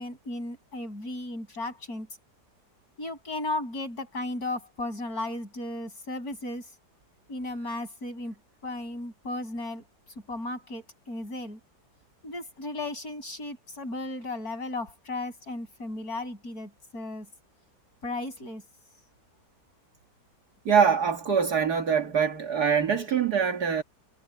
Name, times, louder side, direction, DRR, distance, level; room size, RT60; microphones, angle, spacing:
voice 1, 0.0-2.1 3.0-6.6 7.3-8.3 8.6-9.8 10.3-11.6 12.2-17.3 18.0-18.6, left 2 dB, 60° left, 8.1 m, -35 dB
voice 2, 20.7-23.8, right 7 dB, 65° right, 2.4 m, -24 dB
omnidirectional pair, 1.8 m